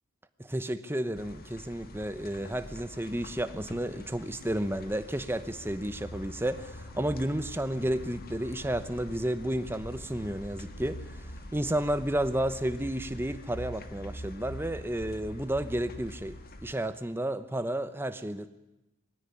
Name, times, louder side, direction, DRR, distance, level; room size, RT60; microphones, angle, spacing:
voice 1, 0.4-11.2 11.5-18.5, right 1 dB, 10° right, 0.9 m, -32 dB
sound 1, 1.1-16.7, equal, 45° left, 1.7 m, -44 dB
21.5 x 16.0 x 9.8 m
head